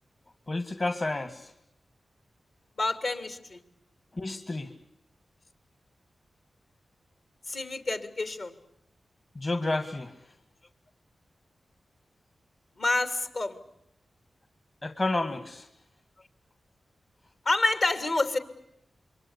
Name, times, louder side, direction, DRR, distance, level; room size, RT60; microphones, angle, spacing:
voice 1, 0.5-1.5 4.2-4.7 9.4-10.1 14.8-15.7, left 2 dB, 50° left, 8 dB, 2.0 m, -30 dB
voice 2, 2.8-3.6 7.5-8.5 12.8-13.6 17.4-18.4, left 2 dB, 70° left, 7 dB, 3.1 m, -28 dB
27.0 x 23.0 x 8.4 m, 0.79 s
cardioid pair, 40°, 0 cm